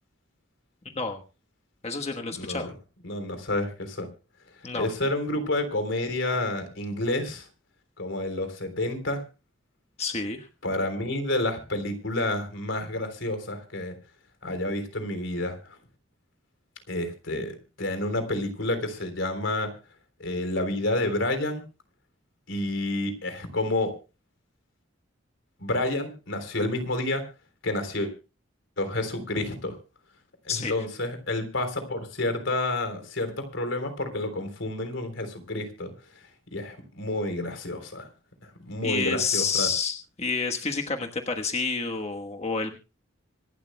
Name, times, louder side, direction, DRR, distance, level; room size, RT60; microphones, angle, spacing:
voice 1, 0.8-1.2 1.8-2.7 4.6-4.9 10.0-10.5 30.5-30.7 38.8-42.8, left 4 dB, 35° left, 4 dB, 1.3 m, -29 dB
voice 2, 2.3-2.7 3.0-4.1 4.7-7.5 8.0-9.2 10.6-14.0 14.4-15.8 16.9-17.5 17.8-19.7 20.2-21.6 22.5-23.9 25.6-27.2 27.6-28.1 28.8-29.8 30.5-35.9 36.5-38.1 38.4-39.7, left 1 dB, 80° left, 7 dB, 3.6 m, -29 dB
25.5 x 12.0 x 2.2 m, 0.32 s
head